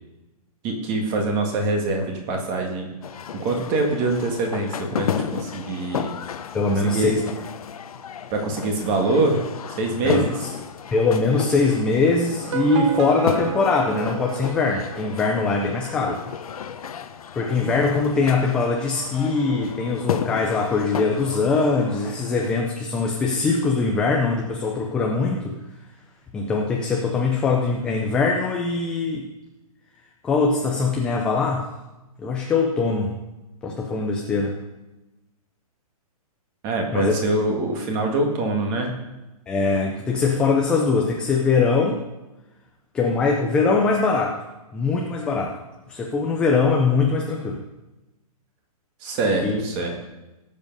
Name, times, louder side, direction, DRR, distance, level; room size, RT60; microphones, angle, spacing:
voice 1, 0.6-2.9 3.3-6.1 6.8-7.1 8.3-9.4 9.8-10.3 36.6-38.9 49.0-50.0, right 2 dB, 20° right, 2 dB, 1.8 m, -24 dB
sound 1, 3.0-22.6, left 8 dB, 70° left, 1.0 m, -33 dB
voice 2, 6.5-7.2 10.0-10.5 10.9-16.3 17.4-25.5 26.3-29.3 30.2-31.7 32.2-33.2 33.6-34.6 36.9-37.1 39.5-42.0 42.9-44.4 44.7-45.5 45.9-47.6 49.4-49.6, left 4 dB, 5° left, -1 dB, 0.5 m, -22 dB
sound 2, 12.3-15.5, right 10 dB, 50° right, 0.8 m, -30 dB
18.5 x 7.4 x 5.4 m, 1.0 s
hypercardioid pair, 170°, 20 cm